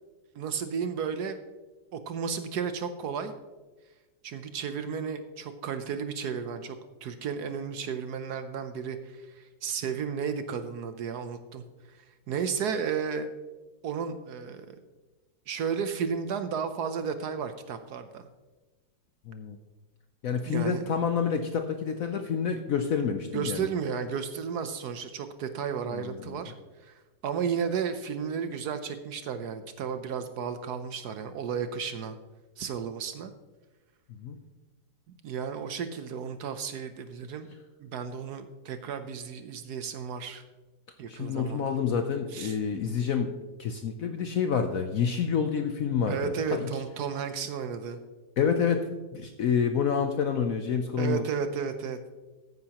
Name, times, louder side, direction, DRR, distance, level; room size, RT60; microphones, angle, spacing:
voice 1, 0.3-1.4 1.9-3.3 4.2-6.8 7.0-11.6 11.9-12.0 12.3-13.3 13.8-14.7 15.5-18.3 20.5-20.9 23.3-26.5 26.8-32.2 32.6-33.3 35.2-37.5 37.8-40.4 41.0-41.7 42.3-42.6 46.1-48.0 51.0-52.0, right 6 dB, 65° right, 9 dB, 1.1 m, -33 dB
voice 2, 19.3-19.6 20.2-23.7 25.9-26.4 34.1-34.4 41.1-43.3 43.6-46.7 48.4-48.9 49.1-51.2, left 6 dB, 65° left, 6 dB, 0.8 m, -28 dB
14.0 x 9.5 x 2.9 m, 1.2 s
omnidirectional pair, 2.0 m